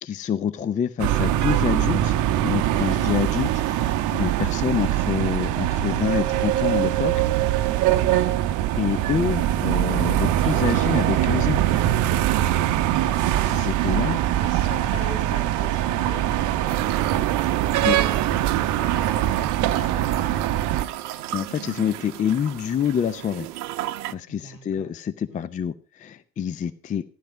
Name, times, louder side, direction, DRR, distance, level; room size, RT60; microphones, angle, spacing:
voice 1, 0.0-7.1 8.8-11.8 13.5-14.2 17.9-18.0 21.3-23.5 24.1-27.0, left 8 dB, 15° left, 15 dB, 0.6 m, -27 dB
sound 1, 1.0-20.9, right 13 dB, 35° right, 1.0 m, -22 dB
voice 2, 7.9-8.2 13.0-13.2 14.0-20.9 24.3-24.9 25.3-25.5, left 3 dB, 65° left, 6 dB, 5.4 m, -42 dB
sound 2, 16.7-24.1, right 14 dB, 60° right, 0.9 m, -35 dB
15.0 x 11.0 x 5.0 m, 0.37 s
figure-of-eight pair, 80°, 50 cm